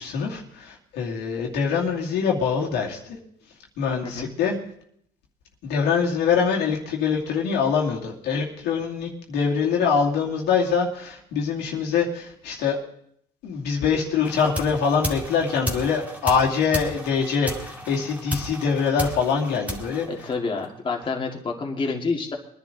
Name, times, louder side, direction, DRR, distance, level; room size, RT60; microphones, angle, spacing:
voice 1, 0.0-3.2 3.8-4.5 5.6-12.8 13.4-20.1, left 6 dB, 90° left, -1 dB, 2.6 m, -24 dB
sound 1, 14.2-20.8, equal, 10° right, 2.1 m, -34 dB
voice 2, 20.1-22.4, left 4 dB, 30° left, 0 dB, 2.1 m, -28 dB
22.5 x 10.5 x 3.9 m, 0.70 s
cardioid pair, 110°, 17 cm